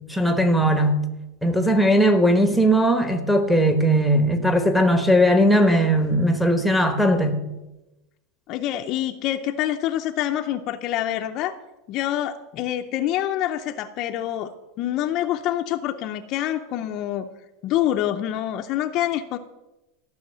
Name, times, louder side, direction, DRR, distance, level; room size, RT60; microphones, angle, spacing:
voice 1, 0.1-1.0 1.4-7.4, equal, ahead, 1.0 m, -18 dB
voice 2, 8.5-11.5 11.9-17.3 17.6-19.4, left 12 dB, 35° left, 0.6 m, -26 dB
14.0 x 6.4 x 9.0 m
supercardioid pair, 170°, 0 cm